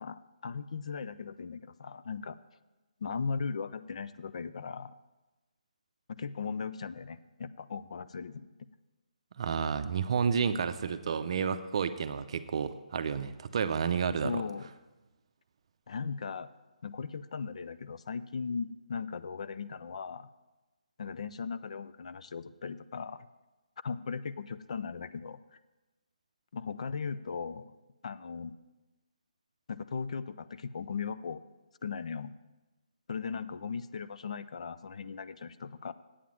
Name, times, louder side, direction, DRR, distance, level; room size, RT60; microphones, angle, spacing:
voice 1, 0.0-2.4 3.0-4.9 6.2-8.5 14.2-14.7 15.9-16.5 16.8-20.3 21.0-23.3 23.8-25.6 26.5-27.7 28.0-28.5 29.7-31.4 31.8-32.3 33.1-35.9, left 5 dB, 50° left, 13 dB, 0.4 m, -38 dB
voice 2, 9.4-14.4, right 6 dB, 45° right, 11 dB, 0.6 m, -31 dB
8.5 x 7.5 x 7.1 m, 1.1 s
hypercardioid pair, 160°, 4 cm